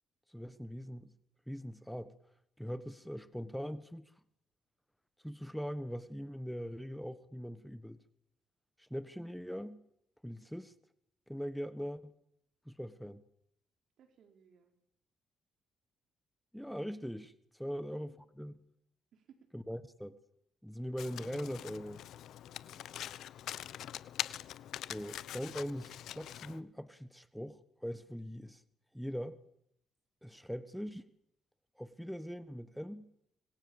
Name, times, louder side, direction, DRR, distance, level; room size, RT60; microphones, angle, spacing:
voice 1, 0.3-1.1 1.5-2.2 2.6-4.1 5.2-8.0 8.8-9.8 10.2-10.7 11.3-12.1 12.7-13.2 16.5-18.6 19.5-20.2 20.6-22.1 24.8-28.6 28.9-29.4 30.2-31.0 31.8-33.1, equal, ahead, 1.5 m, -41 dB
voice 2, 14.0-14.7 17.7-18.3 19.1-19.4 22.4-22.8, right 7 dB, 70° right, 4.6 m, -64 dB
Domestic sounds home sounds, 21.0-26.6, left 12 dB, 80° left, 0.9 m, -43 dB
26.0 x 25.0 x 7.3 m
cardioid pair, 90°, 0 cm